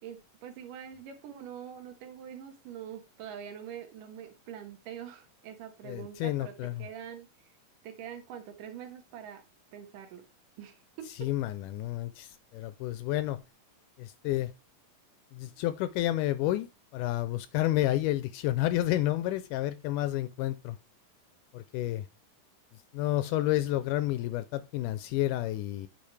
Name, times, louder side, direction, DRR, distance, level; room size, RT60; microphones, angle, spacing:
voice 1, 0.0-6.5 6.8-7.3 7.8-9.4 9.7-10.2 10.6-11.3, right 9 dB, 70° right, 2.6 m, -44 dB
voice 2, 5.9-6.9 11.2-13.4 14.0-14.5 15.3-20.8 21.5-22.1 22.9-25.9, left 15 dB, 80° left, 1.9 m, -30 dB
8.6 x 5.4 x 3.2 m
omnidirectional pair, 4.0 m